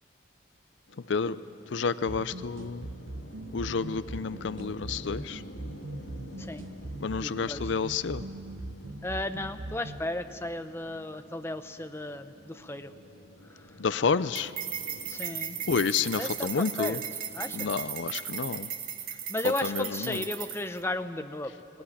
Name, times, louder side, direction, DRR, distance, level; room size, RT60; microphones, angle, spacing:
sound 1, 0.9-18.1, left 1 dB, 85° left, 2.0 m, -50 dB
voice 1, 1.7-2.9 3.5-5.4 7.0-8.2 13.8-14.5 15.7-17.0 17.5-18.7 19.4-20.3, left 5 dB, 70° left, 15 dB, 0.5 m, -30 dB
sound 2, 2.1-10.1, right 2 dB, 85° right, 1.2 m, -41 dB
voice 2, 7.2-7.6 9.0-12.9 13.5-13.7 15.1-15.6 16.2-17.0 17.3-17.8 19.3-21.5, left 1 dB, 15° left, 8 dB, 0.7 m, -35 dB
sound 3, 14.4-20.8, right 8 dB, 45° right, 1.9 m, -36 dB
20.0 x 18.5 x 9.9 m, 2.5 s
head